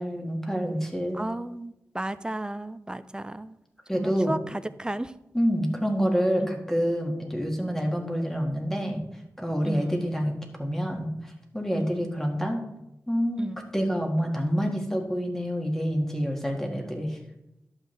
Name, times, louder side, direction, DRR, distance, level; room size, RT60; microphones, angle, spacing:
voice 1, 0.0-1.3 3.9-4.4 5.3-9.0 9.4-12.6 13.1-17.2, equal, 5° left, 1 dB, 1.7 m, -27 dB
voice 2, 1.1-3.6 3.9-5.1 6.4-6.5 9.6-10.0 11.7-12.1 13.4-13.6, right 1 dB, 15° right, 13 dB, 0.5 m, -34 dB
11.5 x 7.3 x 3.3 m, 0.86 s
wide cardioid pair, 90°, 6 cm